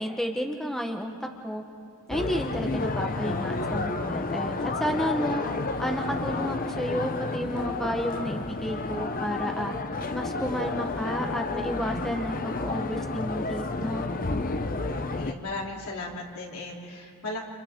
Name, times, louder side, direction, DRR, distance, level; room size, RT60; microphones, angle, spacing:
voice 1, 0.0-1.6 2.1-5.4 5.8-9.7 10.1-14.1, equal, ahead, 2 dB, 1.2 m, -31 dB
sound 1, 2.1-15.3, left 3 dB, 40° left, 0.8 m, -31 dB
voice 2, 15.2-17.4, left 2 dB, 75° left, -2 dB, 3.6 m, -36 dB
30.0 x 28.0 x 3.8 m, 2.4 s
head